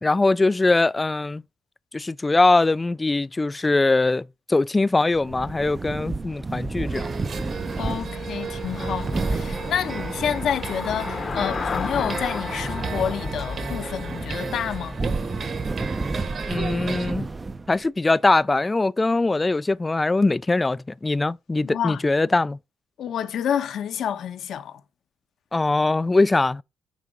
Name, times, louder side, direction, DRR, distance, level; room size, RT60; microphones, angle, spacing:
voice 1, 0.0-1.4 1.9-7.1 16.5-17.3 17.7-22.6 25.5-26.6, left 2 dB, 20° left, 0.4 m, -21 dB
sound 1, 5.1-17.9, right 3 dB, 25° right, 0.6 m, -32 dB
Traffic noise roadway noise / Bicycle, 6.5-15.7, left 5 dB, 45° left, 1.0 m, -34 dB
sound 2, 6.9-17.1, right 5 dB, 50° right, 1.6 m, -34 dB
voice 2, 7.8-15.0 21.6-22.0 23.0-24.8, left 9 dB, 70° left, 1.0 m, -29 dB
9.3 x 3.7 x 5.3 m
cardioid pair, 90°, 0 cm